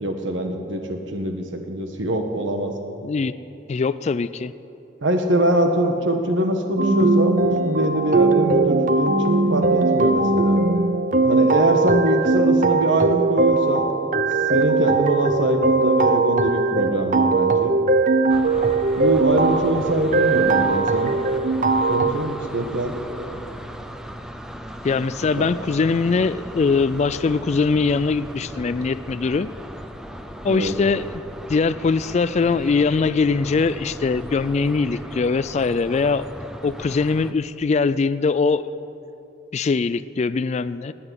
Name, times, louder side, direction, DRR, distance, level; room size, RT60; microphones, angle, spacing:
voice 1, 0.0-2.7 5.0-10.6 11.2-13.9 14.4-17.7 19.0-21.1 21.9-23.4 25.4-25.5 30.4-30.7, right 1 dB, 80° right, 5 dB, 1.4 m, -23 dB
voice 2, 3.7-4.5 24.8-29.5 30.4-31.0 31.5-36.2 36.6-38.7 39.5-40.9, left 4 dB, 35° left, 14 dB, 0.3 m, -21 dB
sound 1, 6.8-22.1, right 3 dB, 45° right, 0.7 m, -20 dB
sound 2, 18.3-37.3, equal, 5° right, 0.7 m, -37 dB
19.5 x 8.9 x 8.1 m, 2.9 s
head